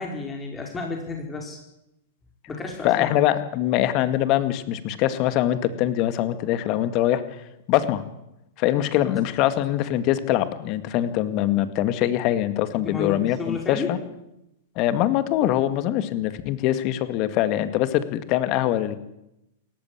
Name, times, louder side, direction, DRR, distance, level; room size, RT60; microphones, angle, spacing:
voice 1, 0.0-1.6 2.5-3.1 12.8-13.9, left 3 dB, 15° left, 1 dB, 4.9 m, -32 dB
voice 2, 2.8-7.2 7.7-8.0 8.6-14.0 14.8-19.0, left 13 dB, 40° left, 11 dB, 2.1 m, -23 dB
28.0 x 14.5 x 8.8 m, 0.88 s
figure-of-eight pair, 100°, 0 cm